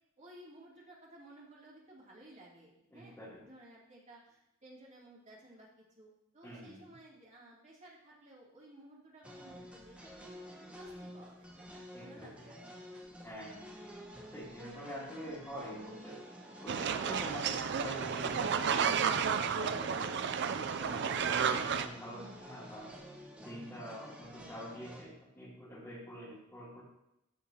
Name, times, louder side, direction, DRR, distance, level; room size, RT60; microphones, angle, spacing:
voice 1, 0.2-10.4 10.7-12.9, right 1 dB, 35° right, -5 dB, 2.7 m, -56 dB
voice 2, 2.9-3.4 6.4-6.9 11.9-12.5 13.2-13.7 14.3-16.2 16.6-20.3 20.8-22.9 23.4-26.8, equal, 10° left, -7 dB, 3.0 m, -46 dB
sound 1, 9.2-25.0, equal, 5° right, 1.1 m, -50 dB
sound 2, 16.7-21.9, right 7 dB, 55° right, 0.5 m, -32 dB
13.5 x 5.4 x 2.9 m, 0.84 s
head